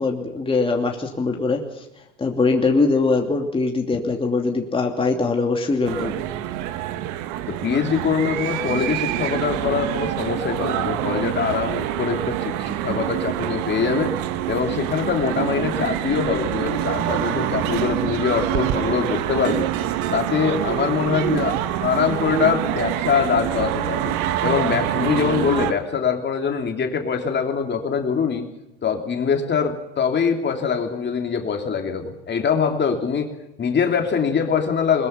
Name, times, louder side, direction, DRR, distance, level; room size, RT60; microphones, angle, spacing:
voice 1, 0.0-1.6 2.2-6.2, left 3 dB, 15° left, 1 dB, 2.8 m, -22 dB
sound 1, 5.9-25.7, right 12 dB, 55° right, 1.7 m, -25 dB
voice 2, 7.5-14.1 14.5-19.7 20.1-24.1 24.4-28.5 28.8-33.3 33.6-35.1, left 6 dB, 30° left, 4 dB, 3.1 m, -23 dB
21.5 x 21.5 x 5.8 m, 0.91 s
hypercardioid pair, 80°, 35 cm